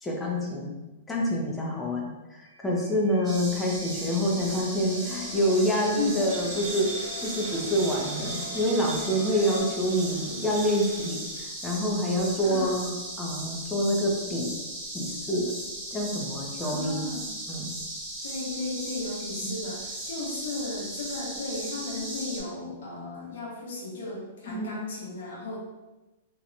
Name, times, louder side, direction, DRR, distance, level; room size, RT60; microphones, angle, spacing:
voice 1, 0.0-0.7 1.1-6.9 7.2-11.2 11.6-14.5 14.9-15.5 15.9-17.0 17.5-17.7 19.4-19.5 24.5-24.8, equal, 10° left, -2 dB, 0.5 m, -27 dB
sound 1, 2.5-9.6, right 1 dB, 60° right, 0.7 m, -44 dB
sound 2, 3.2-22.4, right 1 dB, 10° right, 0.9 m, -37 dB
sound 3, 6.3-11.5, right 2 dB, 90° right, 0.9 m, -40 dB
voice 2, 12.4-12.7 16.6-17.3 18.2-25.6, left 3 dB, 75° left, -4 dB, 1.0 m, -35 dB
2.8 x 2.1 x 2.5 m, 1.1 s
hypercardioid pair, 165°, 0 cm